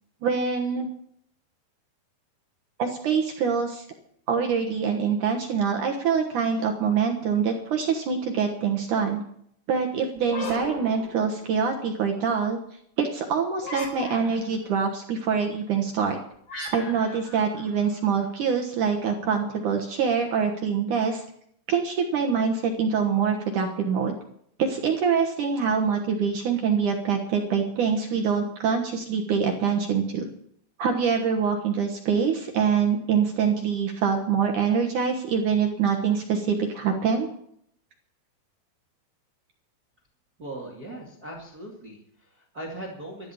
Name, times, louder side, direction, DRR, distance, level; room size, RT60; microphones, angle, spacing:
voice 1, 0.2-0.9 2.8-3.8 4.3-9.2 9.7-12.6 13.0-16.2 16.7-21.2 21.7-24.1 24.6-30.3 30.8-37.3, right 6 dB, 70° right, 2 dB, 2.0 m, -25 dB
sound 1, 10.2-11.7 13.6-14.7 16.5-18.3, left 2 dB, 25° left, 4.1 m, -38 dB
voice 2, 40.4-43.3, right 1 dB, 30° right, -2 dB, 1.7 m, -39 dB
13.0 x 12.0 x 7.1 m, 0.70 s
omnidirectional pair, 5.4 m